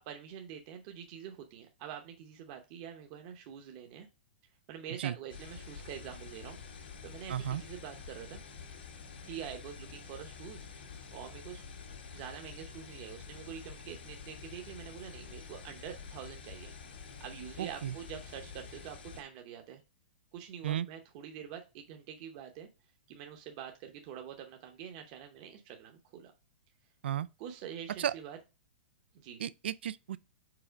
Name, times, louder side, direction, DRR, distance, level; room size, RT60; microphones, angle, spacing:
voice 1, 0.1-4.1 4.7-8.4 9.2-10.6 11.1-11.6 12.1-16.7 17.2-19.8 20.3-22.7 23.1-26.3 27.4-28.4 29.1-29.4, right 9 dB, 35° right, 0.8 m, -46 dB
sound 1, 5.3-19.2, left 5 dB, 75° left, 1.9 m, -48 dB
voice 2, 7.3-7.6 17.6-17.9 20.6-20.9 27.0-27.3 28.0-28.1 29.4-30.2, right 10 dB, 85° right, 0.3 m, -34 dB
4.8 x 4.3 x 5.0 m
hypercardioid pair, 165°, 6 cm